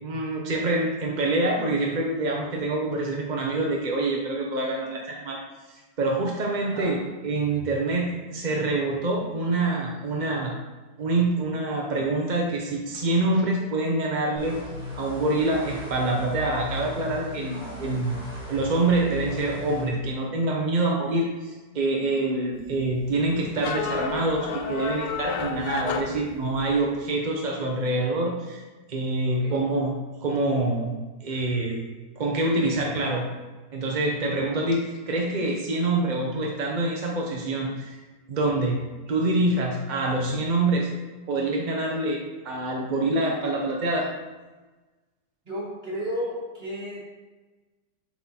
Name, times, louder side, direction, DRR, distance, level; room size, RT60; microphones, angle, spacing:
voice 1, 0.0-5.4 5.7-7.0 7.2-10.5 11.0-14.6 15.0-18.2 18.5-28.6 28.9-29.9 30.2-30.9 31.2-31.8 32.2-33.2 33.7-38.0 38.3-38.8 39.1-40.9 41.3-42.2 42.4-44.1, right 2 dB, 45° right, 0 dB, 0.5 m, -26 dB
voice 2, 6.6-6.9 29.3-29.6 45.4-47.0, equal, 30° right, -4 dB, 1.9 m, -33 dB
sound 1, 14.4-19.9, left 2 dB, 5° right, 1.9 m, -37 dB
sound 2, 22.5-26.9, left 5 dB, 85° left, 1.3 m, -32 dB
7.2 x 4.6 x 4.3 m, 1.2 s
omnidirectional pair, 1.9 m